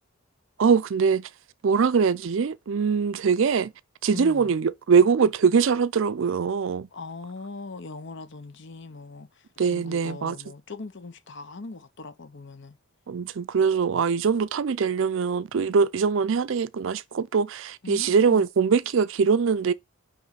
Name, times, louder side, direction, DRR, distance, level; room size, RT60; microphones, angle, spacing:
voice 1, 0.6-1.3 1.6-3.7 4.0-6.9 9.6-10.4 13.1-19.7, right 6 dB, 60° right, 0.4 m, -22 dB
voice 2, 4.1-4.5 6.9-12.8 17.8-18.5, left 3 dB, 55° left, 0.8 m, -40 dB
9.3 x 3.1 x 4.0 m
head